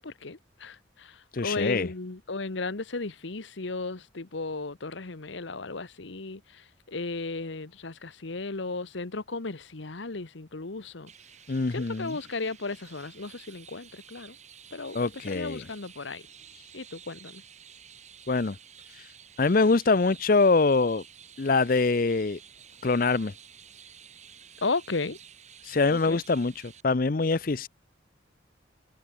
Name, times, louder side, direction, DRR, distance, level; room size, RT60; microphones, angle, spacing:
voice 1, 0.0-11.1 11.7-14.4 14.7-16.2 16.7-17.4 24.6-25.2 25.9-26.2, left 3 dB, 70° left, 1.2 m, -35 dB
voice 2, 1.3-1.9 11.5-12.2 14.9-15.6 18.3-18.6 19.4-21.0 21.4-22.4 22.8-23.3 25.6-27.7, left 3 dB, 45° left, 0.6 m, -24 dB
Chirp tweet, 11.1-26.8, right 8 dB, 35° right, 4.3 m, -52 dB
head